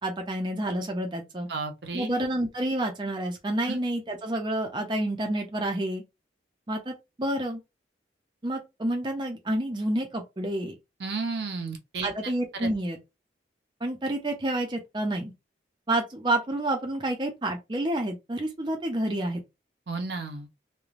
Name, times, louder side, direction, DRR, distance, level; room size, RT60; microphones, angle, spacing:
voice 1, 0.0-1.5 1.9-6.0 6.7-6.9 7.2-7.6 8.4-10.8 12.0-13.0 13.8-15.3 15.9-19.4, right 1 dB, 25° right, 0.5 m, -29 dB
voice 2, 1.5-2.3 3.7-3.8 11.0-12.1 12.5-12.7 19.9-20.5, right 4 dB, 70° right, 0.6 m, -33 dB
3.1 x 2.1 x 2.4 m
head